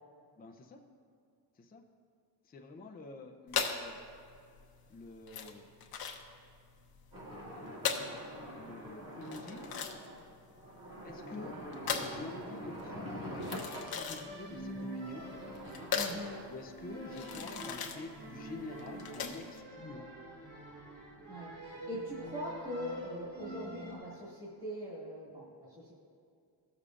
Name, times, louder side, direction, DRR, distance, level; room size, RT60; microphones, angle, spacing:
voice 1, 0.4-0.8 1.5-1.8 2.4-4.0 4.9-5.7 8.6-9.7 11.0-11.6 12.0-15.3 16.5-20.1, left 3 dB, 20° left, 2 dB, 0.5 m, -48 dB
sound 1, 3.5-19.6, left 6 dB, 55° left, 0.9 m, -39 dB
sound 2, 7.1-13.9 14.8-16.4, equal, 50° right, 2.3 m, -45 dB
sound 3, 13.4-24.0, right 1 dB, 85° right, 2.1 m, -46 dB
voice 2, 15.9-16.4 21.3-25.9, equal, 20° right, -7 dB, 1.9 m, -41 dB
16.0 x 6.8 x 2.5 m, 2.3 s
cardioid pair, 135°, 43 cm